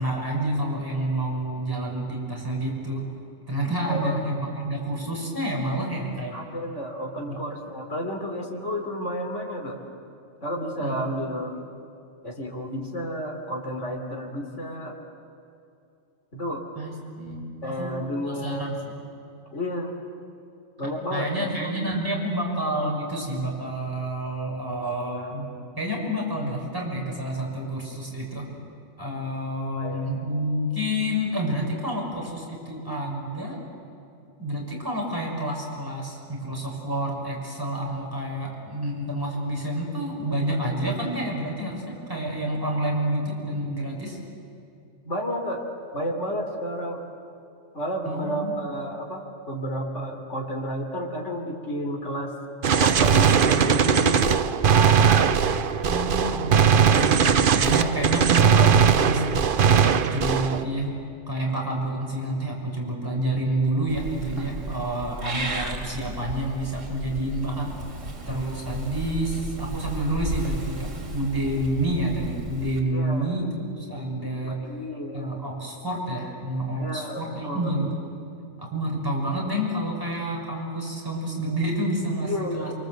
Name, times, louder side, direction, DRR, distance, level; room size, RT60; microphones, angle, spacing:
voice 1, 0.0-3.0 3.5-6.4 7.3-7.4 10.8-11.1 16.7-17.9 18.3-18.7 21.1-25.5 25.8-28.5 29.0-33.6 34.4-44.2 48.0-48.5 55.9-60.9 61.3-67.7 68.3-74.6 75.1-77.9 78.6-82.7, right 1 dB, 15° right, -2 dB, 6.1 m, -29 dB
voice 2, 3.8-4.2 6.3-9.8 10.4-11.5 12.2-14.9 16.3-16.6 17.6-18.8 19.5-19.9 20.8-21.7 29.6-30.1 45.0-45.6 45.9-47.0 47.7-52.3 52.8-54.4 72.9-73.3 74.5-75.3 76.8-77.2 77.5-77.7 82.2-82.7, equal, 70° left, 0 dB, 3.5 m, -31 dB
Gunshot gunfire, 52.6-60.6, right 7 dB, 50° right, 0.8 m, -19 dB
Purr / Meow, 63.9-72.8, right 2 dB, 85° right, 2.9 m, -34 dB
28.5 x 24.0 x 8.0 m, 2.6 s
omnidirectional pair, 1.3 m